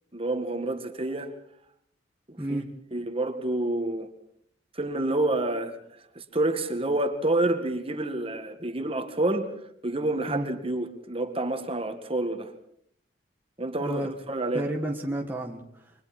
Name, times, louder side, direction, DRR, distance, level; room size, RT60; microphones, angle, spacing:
voice 1, 0.1-1.3 2.3-2.6 2.9-4.1 4.7-5.8 6.2-9.5 9.8-12.5 13.6-14.7, right 2 dB, 30° right, 1.9 m, -28 dB
voice 2, 13.8-14.1 14.5-15.9, right 1 dB, 10° right, 1.6 m, -31 dB
28.5 x 24.0 x 4.4 m
head